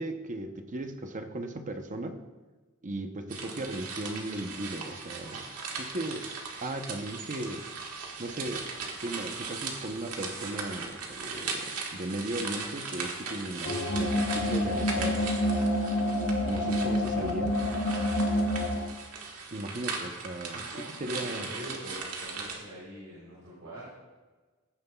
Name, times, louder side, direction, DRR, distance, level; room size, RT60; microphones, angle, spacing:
voice 1, 0.0-2.2 2.8-5.5 5.7-6.3 6.6-7.6 8.2-8.7 9.0-15.3 16.4-17.6 19.5-20.7 21.0-21.5, right 1 dB, 35° right, 6 dB, 0.8 m, -36 dB
sound 1, 3.3-22.6, right 4 dB, 90° right, 1.6 m, -38 dB
sound 2, 13.6-18.9, left 1 dB, 55° left, 1.0 m, -28 dB
voice 2, 20.5-23.9, right 1 dB, 65° right, -7 dB, 3.6 m, -44 dB
15.5 x 9.2 x 2.3 m, 1.3 s
head